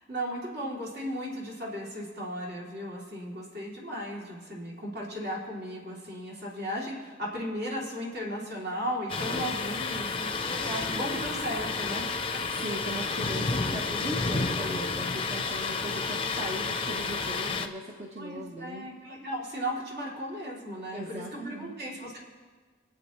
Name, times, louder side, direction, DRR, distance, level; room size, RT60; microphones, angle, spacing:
voice 1, 0.0-12.0 12.8-12.9 13.6-13.7 18.2-22.2, equal, 55° right, -4 dB, 3.2 m, -36 dB
Thunder, 9.1-17.7, left 4 dB, 30° left, 0.7 m, -31 dB
voice 2, 12.6-18.9 20.9-21.7, right 1 dB, 35° right, -2 dB, 1.2 m, -38 dB
26.0 x 8.8 x 3.2 m, 1.5 s
head